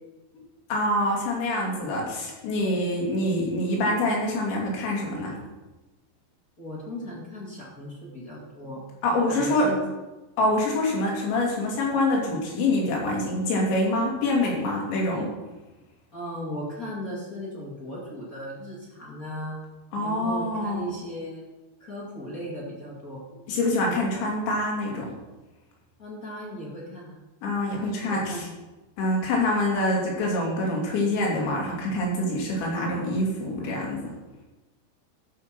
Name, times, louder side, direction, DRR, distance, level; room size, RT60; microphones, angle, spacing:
voice 1, 0.7-5.4 9.0-9.7 10.4-15.3 19.9-20.9 23.5-25.2 27.4-28.5 29.0-34.1, left 1 dB, 70° left, -2 dB, 4.8 m, -25 dB
voice 2, 6.6-8.8 9.3-9.8 16.1-19.6 20.0-21.4 21.8-23.2 26.0-27.2 28.0-28.5, equal, 40° left, -5 dB, 1.2 m, -37 dB
13.5 x 6.0 x 6.1 m, 1.1 s
omnidirectional pair, 5.6 m